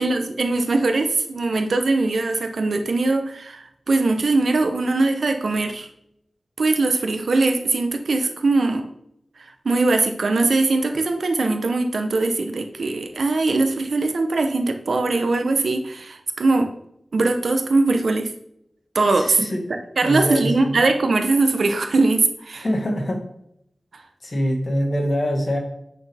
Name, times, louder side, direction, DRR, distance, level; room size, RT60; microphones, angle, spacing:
voice 1, 0.0-5.9 6.6-8.8 9.6-16.7 17.1-18.3 18.9-19.4 20.0-22.6, right 3 dB, 75° right, 6 dB, 0.9 m, -21 dB
voice 2, 19.1-19.6 20.0-20.8 22.6-23.2 24.2-25.6, equal, 45° left, 2 dB, 1.8 m, -24 dB
8.2 x 6.5 x 3.5 m, 0.76 s
wide cardioid pair, 95°, 0 cm